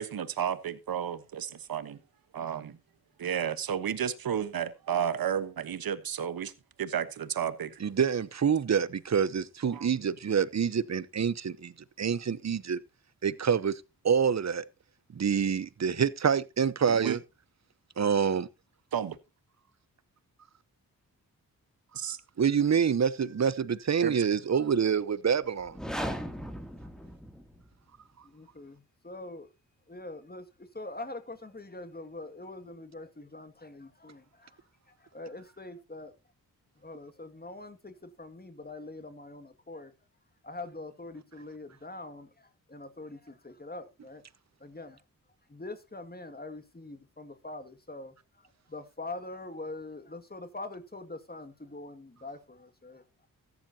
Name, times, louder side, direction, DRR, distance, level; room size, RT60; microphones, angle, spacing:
voice 1, 0.0-2.0 2.3-2.8 3.2-6.5 6.8-7.8 9.7-9.9 16.9-17.2 18.9-19.2 21.9-22.2 24.0-24.1, right 8 dB, 75° right, 1.2 m, -32 dB
voice 2, 7.8-11.7 12.0-12.8 13.2-13.7 14.0-14.6 15.1-17.2 18.0-18.5 22.4-25.8, right 7 dB, 45° right, 0.9 m, -26 dB
sound 1, 25.6-27.7, equal, ahead, 2.7 m, -37 dB
voice 3, 28.2-29.5 29.9-36.1 36.8-39.9 40.4-44.2 44.6-45.0 45.5-53.0, left 2 dB, 25° left, 2.2 m, -44 dB
14.0 x 11.0 x 2.8 m
cardioid pair, 50°, 36 cm